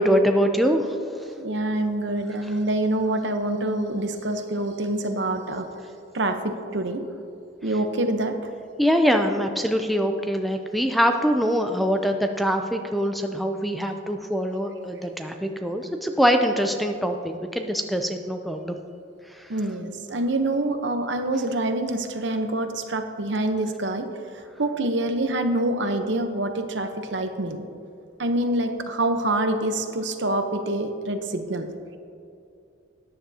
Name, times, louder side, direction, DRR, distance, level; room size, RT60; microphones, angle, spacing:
voice 1, 0.0-1.3 8.8-18.8 19.3-19.5, equal, ahead, 5 dB, 0.4 m, -23 dB
voice 2, 1.4-5.7 6.1-7.0 7.6-8.3 19.5-24.1 24.6-27.6 28.2-31.7, right 1 dB, 65° right, 7 dB, 0.8 m, -26 dB
13.5 x 9.6 x 2.8 m, 2.5 s
head